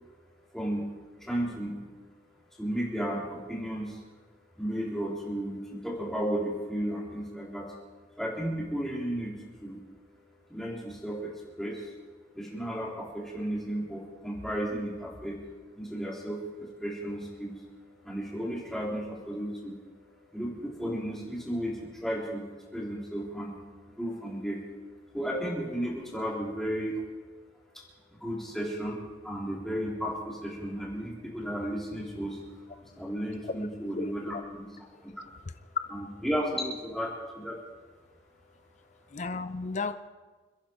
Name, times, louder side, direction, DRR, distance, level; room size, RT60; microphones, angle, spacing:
voice 1, 0.5-0.9 1.2-1.8 2.5-4.0 4.6-7.8 8.2-9.3 9.6-9.8 10.5-11.9 12.3-15.4 15.8-19.8 20.1-22.5 22.7-23.6 23.9-24.6 25.1-27.0 27.7-27.8 28.1-34.7 35.0-35.2 35.9-37.6 38.8-39.1, equal, ahead, -4 dB, 3.7 m, -34 dB
voice 2, 34.0-34.4 39.1-39.9, left 3 dB, 40° left, 11 dB, 0.5 m, -34 dB
29.0 x 10.5 x 4.7 m, 1.3 s
head